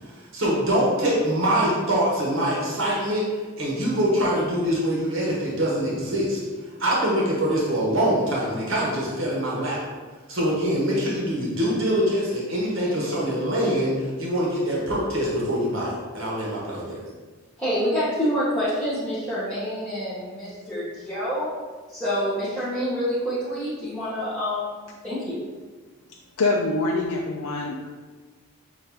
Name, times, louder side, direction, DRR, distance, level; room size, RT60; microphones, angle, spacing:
voice 1, 0.3-3.3 3.6-6.4 6.8-9.8 10.3-17.0, equal, 65° right, -4 dB, 1.0 m, -24 dB
voice 2, 17.6-21.5 21.9-24.7 25.0-25.4, equal, 5° left, -13 dB, 0.9 m, -27 dB
voice 3, 26.4-27.9, left 2 dB, 90° left, -1 dB, 0.4 m, -24 dB
6.6 x 2.5 x 2.8 m, 1.4 s
head